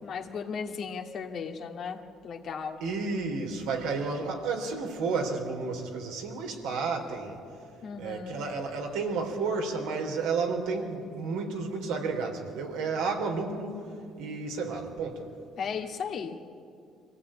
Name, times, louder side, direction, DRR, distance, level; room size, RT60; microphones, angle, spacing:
voice 1, 0.0-2.8 7.8-8.4 15.6-16.4, left 6 dB, 60° left, 4 dB, 2.1 m, -36 dB
voice 2, 2.8-7.4 8.0-13.8 14.2-15.3, right 4 dB, 80° right, 2 dB, 3.6 m, -31 dB
24.5 x 16.5 x 8.9 m, 2.4 s
supercardioid pair, 75°, 0 cm